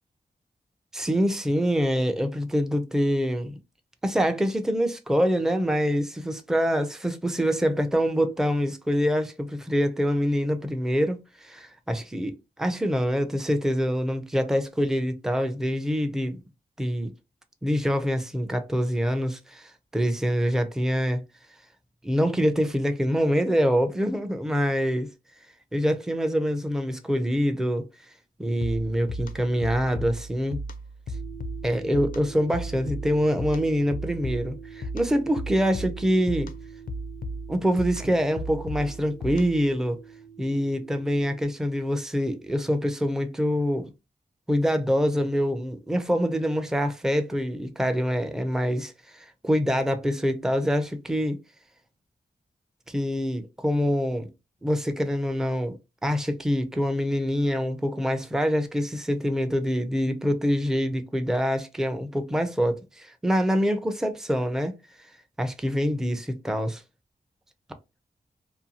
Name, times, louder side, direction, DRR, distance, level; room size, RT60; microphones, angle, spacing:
voice 1, 0.9-3.6 4.0-16.4 16.8-17.1 17.6-21.2 22.0-25.1 25.7-27.9 28.4-30.6 31.6-36.5 37.5-40.0 40.4-43.9 44.5-51.4 52.9-54.3 54.6-55.8 56.0-64.7 65.4-66.8, equal, 5° right, 0.4 m, -25 dB
sound 1, 28.6-39.7, equal, 60° left, 0.4 m, -36 dB
sound 2, 31.1-41.4, right 7 dB, 50° right, 1.0 m, -46 dB
2.6 x 2.2 x 2.7 m
wide cardioid pair, 80°, 17 cm